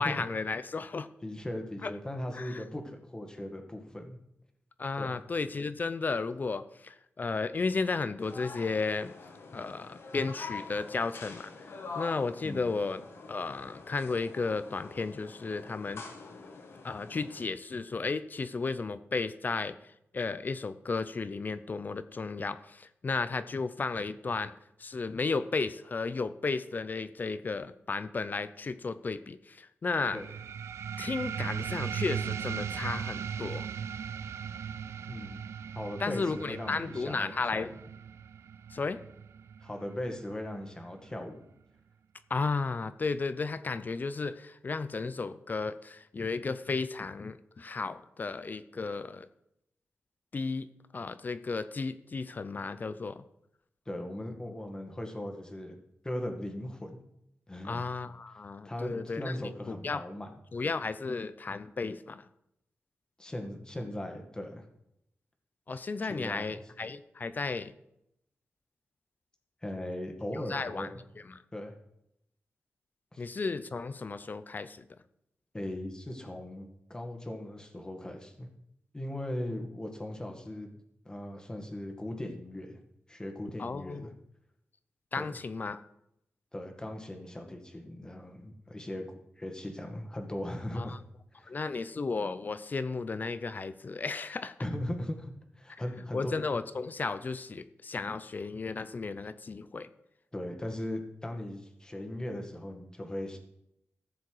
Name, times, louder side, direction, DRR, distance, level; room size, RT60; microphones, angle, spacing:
voice 1, 0.0-1.1 1.8-1.9 2.3-2.6 4.8-9.1 9.5-13.0 13.3-16.0 16.8-19.8 20.1-24.5 24.8-30.2 31.0-33.7 36.0-37.7 38.7-39.0 42.3-49.3 50.3-50.7 50.9-53.2 57.6-59.3 59.7-60.0 60.5-62.2 65.7-67.7 70.5-70.9 71.3-71.4 73.2-74.8 83.6-84.1 85.1-85.8 90.8-90.9 91.5-94.6 96.1-99.9, left 4 dB, 40° left, 13 dB, 0.6 m, -34 dB
voice 2, 1.2-4.2 5.0-5.2 12.4-12.7 30.1-30.3 35.1-35.4 35.7-37.7 39.6-41.4 53.9-55.8 56.0-57.0 57.5-57.9 58.3-60.3 63.2-64.7 65.7-66.6 69.6-70.9 71.5-71.7 73.1-73.3 75.5-78.5 78.9-80.7 81.1-82.8 83.1-84.1 85.2-85.4 86.5-89.0 89.4-91.0 91.3-91.5 94.6-96.3 100.3-103.4, left 1 dB, 15° left, 4 dB, 1.9 m, -38 dB
sound 1, 8.2-17.4, left 4 dB, 65° left, 1.8 m, -46 dB
sound 2, 30.1-41.2, right 7 dB, 75° right, 0.3 m, -38 dB
14.5 x 7.1 x 4.8 m, 0.80 s
cardioid pair, 85°, 5 cm